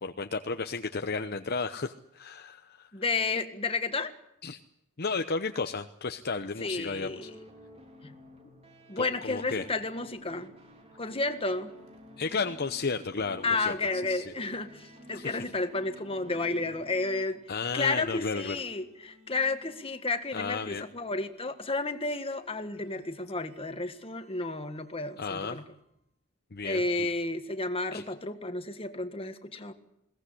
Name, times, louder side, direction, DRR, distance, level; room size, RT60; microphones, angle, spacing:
voice 1, 0.0-2.9 4.4-4.6 5.0-7.3 9.0-9.7 12.2-13.7 14.1-14.3 15.1-15.4 17.5-18.6 20.3-20.8 25.2-25.6 26.5-27.1 27.9-28.0, left 4 dB, 45° left, 7 dB, 0.8 m, -33 dB
voice 2, 2.9-4.2 6.6-7.3 8.0-8.2 8.9-10.5 11.0-11.7 13.4-17.4 17.7-25.6 26.6-29.7, left 3 dB, 25° left, 8 dB, 1.7 m, -32 dB
sound 1, 7.1-17.2, equal, 30° right, 3.3 m, -53 dB
sound 2, 10.9-26.0, left 3 dB, 80° right, 5.3 m, -56 dB
21.5 x 17.5 x 10.0 m, 0.80 s
head